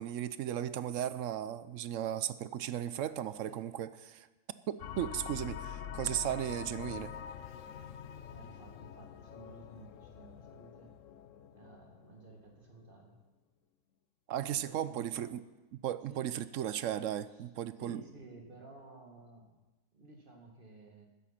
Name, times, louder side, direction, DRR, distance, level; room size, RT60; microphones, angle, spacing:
voice 1, 0.0-4.3 4.7-7.1 14.3-15.4 15.7-18.0, right 11 dB, 70° right, 14 dB, 0.9 m, -36 dB
sound 1, 4.8-12.8, left 9 dB, 70° left, 1.0 m, -46 dB
voice 2, 8.3-11.0 11.5-13.2 14.4-15.4 16.1-16.3 17.3-17.5 17.8-19.6 19.9-21.1, right 2 dB, 35° right, 2 dB, 2.2 m, -54 dB
13.5 x 10.0 x 5.8 m, 1.1 s
omnidirectional pair, 1.5 m